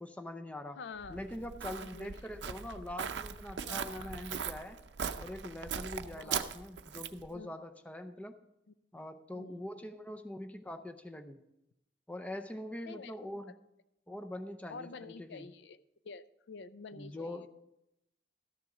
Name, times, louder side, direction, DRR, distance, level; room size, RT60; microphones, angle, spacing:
voice 1, 0.0-0.8 1.1-4.8 5.2-8.4 8.9-11.4 12.1-13.6 14.1-15.5 17.0-17.5, left 1 dB, 10° left, 7 dB, 0.5 m, -43 dB
voice 2, 0.8-1.2 1.7-2.3 3.7-4.1 6.1-6.4 7.3-7.5 8.7-8.8 9.3-9.7 12.9-13.2 14.7-15.8 16.0-17.5, left 4 dB, 75° left, 14 dB, 0.4 m, -48 dB
Walk footsteps, 1.0-7.3, right 7 dB, 80° right, 0.5 m, -40 dB
13.0 x 6.8 x 4.8 m, 0.86 s
head